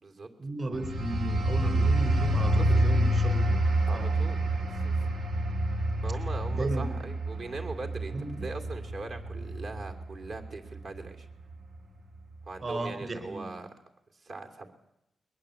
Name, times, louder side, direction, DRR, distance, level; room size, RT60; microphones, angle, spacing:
voice 1, 0.4-3.6 3.9-4.1 6.5-7.0 8.1-8.4 12.6-13.5, right 2 dB, 40° right, 9 dB, 4.2 m, -34 dB
sound 1, 0.7-11.1 11.5-11.8, right 1 dB, 80° right, 2.4 m, -28 dB
voice 2, 3.9-4.4 4.7-5.1 6.0-11.3 12.5-13.7 14.2-14.7, right 3 dB, 65° right, 5 dB, 2.9 m, -40 dB
21.5 x 20.5 x 8.3 m, 0.80 s
wide cardioid pair, 120°, 0 cm